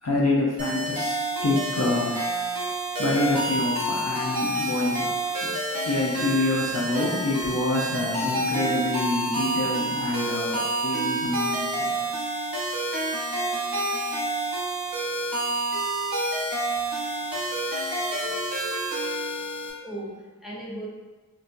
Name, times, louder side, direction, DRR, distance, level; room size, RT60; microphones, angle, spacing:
voice 1, 0.0-2.6 3.0-11.9, left 2 dB, 45° left, -5 dB, 0.5 m, -27 dB
sound 1, 0.6-19.7, right 1 dB, 70° right, 0.8 m, -28 dB
voice 2, 17.2-18.8 19.8-20.9, right 1 dB, ahead, -6 dB, 0.8 m, -41 dB
4.0 x 2.2 x 2.5 m, 1.2 s
wide cardioid pair, 40°, 35 cm